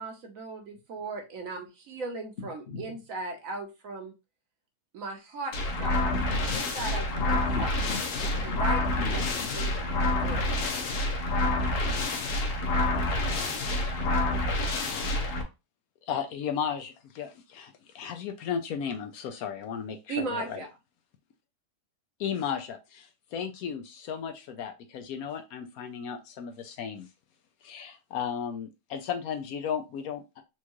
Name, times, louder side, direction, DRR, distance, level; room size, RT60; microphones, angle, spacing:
voice 1, 0.0-4.1 4.9-6.0 6.5-7.7 8.4-9.2 9.5-10.7 20.1-20.7, right 3 dB, 65° right, 3 dB, 1.2 m, -37 dB
voice 2, 2.4-2.8 5.9-6.6 7.1-8.6 8.9-9.5 10.3-10.4, left 4 dB, 45° left, 0 dB, 1.1 m, -38 dB
sound 1, 5.5-15.4, left 2 dB, 90° left, 1.4 m, -28 dB
voice 3, 14.6-15.1 16.1-20.6 22.2-27.1 27.6-30.4, left 7 dB, 75° left, 7 dB, 1.0 m, -35 dB
4.4 x 2.4 x 2.9 m, 0.27 s
omnidirectional pair, 1.6 m